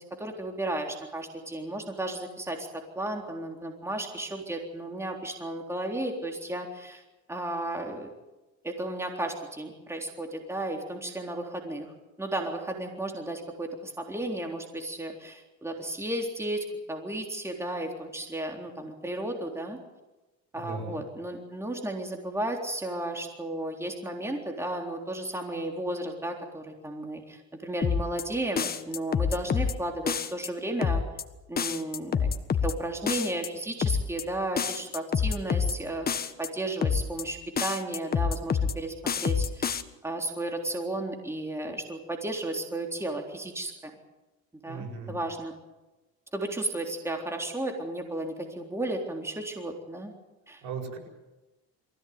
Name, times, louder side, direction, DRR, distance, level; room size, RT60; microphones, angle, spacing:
voice 1, 0.0-7.0 7.3-8.1 8.6-11.9 12.2-19.8 20.5-31.0 31.5-32.3 32.6-36.1 36.4-39.7 40.0-43.9 44.6-45.5 46.3-50.1 50.5-50.6, right 1 dB, 10° right, 2 dB, 3.7 m, -34 dB
voice 2, 20.5-21.0 44.6-45.2 50.6-51.0, right 4 dB, 75° right, 2 dB, 8.0 m, -37 dB
sound 1, 27.8-28.2 28.6-29.7 30.1-30.5 30.8-31.2 31.6-32.7 33.1-33.5 33.8-34.2 34.6-35.7 36.1-36.5 36.8-37.2 37.6-38.7 39.1-39.8, left 6 dB, 35° left, 1.5 m, -27 dB
23.0 x 16.0 x 9.5 m, 1.1 s
cardioid pair, 100°, 29 cm